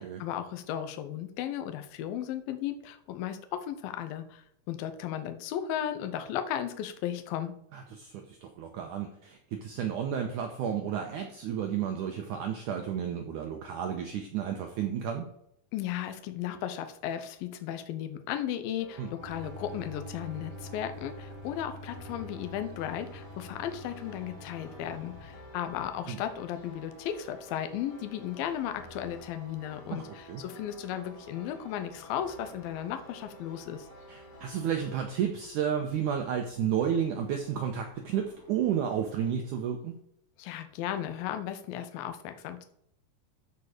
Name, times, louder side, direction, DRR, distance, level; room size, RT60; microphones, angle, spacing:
voice 1, 0.0-7.5 15.7-33.9 40.4-42.6, left 10 dB, 75° left, 8 dB, 2.5 m, -35 dB
voice 2, 7.7-15.3 19.0-19.1 26.1-26.2 29.9-30.4 34.1-39.9, right 8 dB, 75° right, 3 dB, 1.8 m, -32 dB
sound 1, 18.8-35.1, left 1 dB, 55° left, 3.0 m, -51 dB
sound 2, 19.2-25.2, equal, 55° right, 3.0 m, -46 dB
sound 3, 20.1-39.1, left 1 dB, 30° right, 2.3 m, -57 dB
13.0 x 4.7 x 5.0 m, 0.72 s
omnidirectional pair, 4.6 m